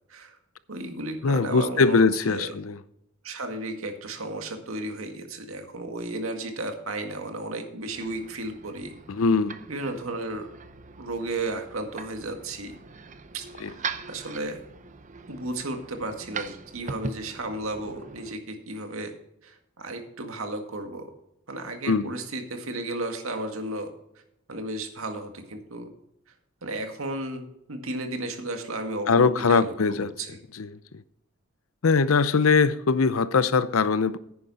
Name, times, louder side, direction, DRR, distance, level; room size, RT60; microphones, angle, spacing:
voice 1, 0.7-2.5 3.2-8.9 9.7-10.5 11.0-12.8 13.3-13.5 13.7-14.6 15.3-19.1 19.4-21.1 21.5-23.9 24.5-25.9 26.6-30.4, right 2 dB, 80° right, 1.9 m, -34 dB
voice 2, 1.2-2.8 9.1-9.6 13.6-13.7 21.9-22.1 29.1-30.1 30.5-30.8 31.8-34.2, left 4 dB, 80° left, 0.6 m, -21 dB
sound 1, 7.8-18.3, right 5 dB, 35° right, 0.7 m, -41 dB
10.5 x 9.7 x 4.2 m
head